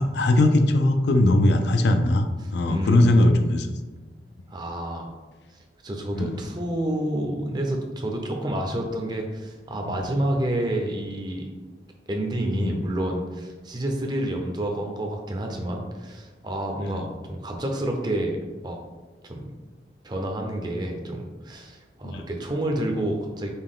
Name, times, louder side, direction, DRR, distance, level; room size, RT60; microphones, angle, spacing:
voice 1, 0.0-3.7 6.2-6.3 9.9-10.0 12.5-12.7 16.9-17.0 22.0-22.2, left 1 dB, 70° left, 7 dB, 0.4 m, -20 dB
voice 2, 2.4-3.5 4.5-5.1 5.5-11.5 12.1-18.8 19.2-19.5 20.0-23.5, right 1 dB, 25° right, 2 dB, 0.5 m, -29 dB
5.3 x 2.2 x 3.6 m, 1.2 s
head